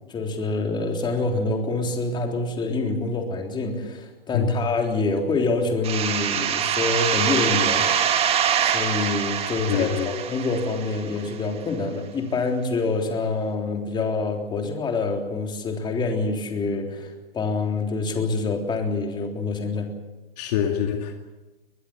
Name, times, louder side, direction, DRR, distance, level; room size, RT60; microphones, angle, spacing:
voice 1, 0.1-7.9 8.6-19.9, left 3 dB, 15° left, 3.5 m, -26 dB
sound 1, 5.8-11.3, right 8 dB, 20° right, 1.9 m, -24 dB
voice 2, 9.7-10.1 20.4-21.1, left 9 dB, 45° left, 2.3 m, -25 dB
22.0 x 21.0 x 8.1 m
hypercardioid pair, 120°, 29 cm